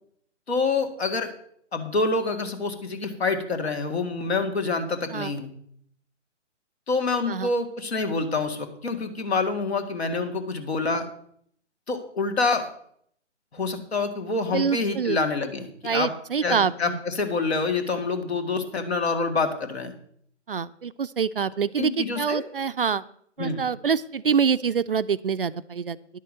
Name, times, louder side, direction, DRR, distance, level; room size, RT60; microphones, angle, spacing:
voice 1, 0.5-1.3 1.7-5.5 6.9-11.1 11.9-12.7 13.5-16.1 16.4-19.9 21.8-22.4 23.4-23.6, left 3 dB, 60° left, 7 dB, 2.0 m, -27 dB
voice 2, 14.5-15.2 15.8-17.0 20.5-23.0 23.4-26.0, right 6 dB, 50° right, 14 dB, 0.4 m, -26 dB
10.5 x 6.6 x 7.5 m, 0.65 s
figure-of-eight pair, 135°, 37 cm